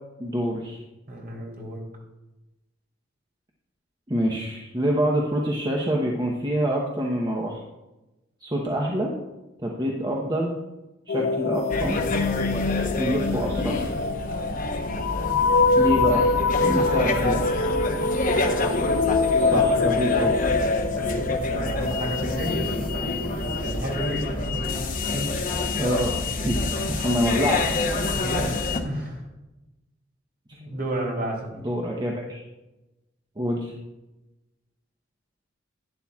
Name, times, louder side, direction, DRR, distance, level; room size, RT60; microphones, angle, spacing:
voice 1, 0.2-0.8 4.1-7.6 8.4-9.1 9.6-10.5 11.1-12.0 13.0-13.8 15.8-16.2 16.6-17.4 19.4-20.3 25.8-26.2 26.4-26.6 26.9-27.8 31.6-32.4 33.4-33.7, equal, 20° right, -1 dB, 0.9 m, -26 dB
voice 2, 1.1-1.8 16.5-17.0 19.5-19.8 21.0-24.8 25.1-25.3 28.1-28.5 28.8-29.2 30.6-31.6, right 1 dB, 50° right, -2 dB, 3.2 m, -32 dB
sound 1, 11.1-23.8, left 3 dB, 75° left, 0.6 m, -25 dB
sound 2, 11.7-28.8, left 2 dB, 45° left, 0.9 m, -28 dB
11.5 x 10.0 x 2.4 m, 1.0 s
head